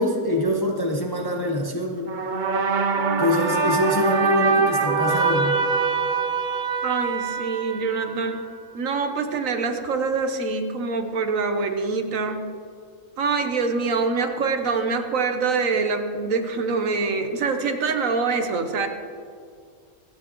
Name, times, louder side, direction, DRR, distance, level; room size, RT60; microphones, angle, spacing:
voice 1, 0.0-2.1 3.2-5.6, left 1 dB, 20° left, 1 dB, 0.8 m, -24 dB
sound 1, 2.1-8.4, right 5 dB, 50° right, 0.6 m, -24 dB
voice 2, 6.8-8.4 8.7-12.4 13.2-18.9, right 4 dB, 65° right, 6 dB, 1.2 m, -25 dB
25.5 x 8.7 x 3.0 m, 2.2 s
omnidirectional pair, 1.5 m